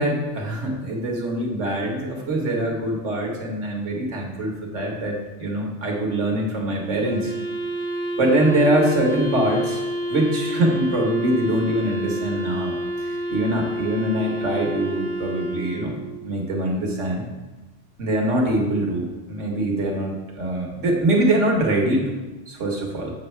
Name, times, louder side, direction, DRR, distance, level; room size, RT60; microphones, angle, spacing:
voice 1, 0.0-7.3 8.2-9.8 10.1-12.8 13.0-16.0 16.2-17.3 18.0-22.1 22.5-23.1, right 1 dB, 90° right, 0 dB, 1.8 m, -23 dB
Wind instrument woodwind instrument, 7.0-16.3, right 1 dB, 85° left, 2.7 m, -29 dB
7.5 x 7.3 x 3.3 m, 1.1 s
omnidirectional pair, 1.2 m